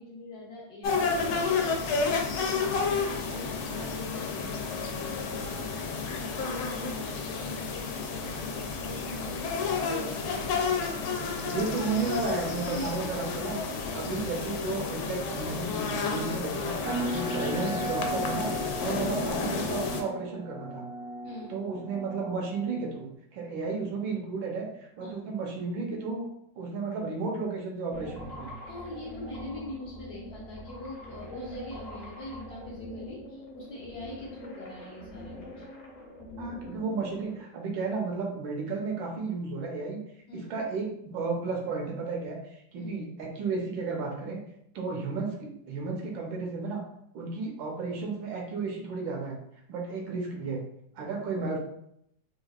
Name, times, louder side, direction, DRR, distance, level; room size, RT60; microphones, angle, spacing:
voice 1, 0.0-12.1 12.6-13.0 13.9-14.1 21.2-21.6 25.0-25.2 28.7-35.7 40.3-40.5 42.8-42.9 51.0-51.1, left 2 dB, 65° left, -4 dB, 1.1 m, -43 dB
sound 1, 0.8-20.0, left 4 dB, 85° left, 1.4 m, -31 dB
voice 2, 11.4-13.6 13.9-16.8 17.1-20.8 21.5-24.7 25.0-26.3 26.6-28.5 36.4-40.0 40.3-44.4 44.7-46.8 47.1-49.4 49.7-50.6 50.9-51.6, right 4 dB, 75° right, 0 dB, 1.4 m, -33 dB
sound 2, 16.8-23.0, right 1 dB, 55° right, 0.6 m, -36 dB
sound 3, 27.9-37.4, left 1 dB, 45° left, 0.8 m, -44 dB
4.6 x 2.3 x 2.3 m, 0.75 s
omnidirectional pair, 2.2 m